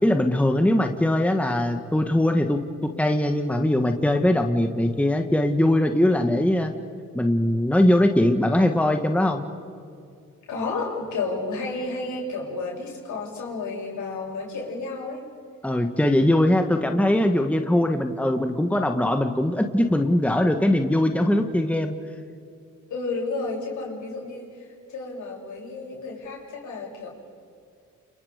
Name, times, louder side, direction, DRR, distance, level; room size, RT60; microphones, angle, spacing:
voice 1, 0.0-6.7 7.1-9.4 15.6-21.9, left 1 dB, 5° left, 5 dB, 1.6 m, -21 dB
voice 2, 10.5-15.2 22.9-27.1, left 3 dB, 75° left, -2 dB, 7.9 m, -31 dB
30.0 x 28.5 x 5.2 m, 2.4 s
cardioid pair, 90°, 30 cm